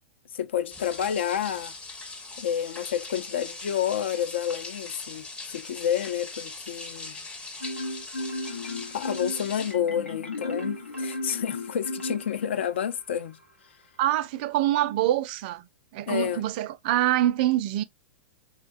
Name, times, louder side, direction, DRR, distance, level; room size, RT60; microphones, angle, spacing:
voice 1, 0.3-1.7 2.4-7.2 8.9-13.4 16.1-16.4, left 9 dB, 65° left, 0.4 m, -29 dB
sound 1, 0.7-9.7, left 3 dB, 15° left, 0.7 m, -41 dB
Marimba xylophone, 7.6-12.8, left 1 dB, 85° left, 0.8 m, -34 dB
voice 2, 14.0-15.7 15.9-17.8, right 13 dB, 45° right, 0.3 m, -25 dB
3.7 x 2.1 x 2.4 m
figure-of-eight pair, 100°, 7 cm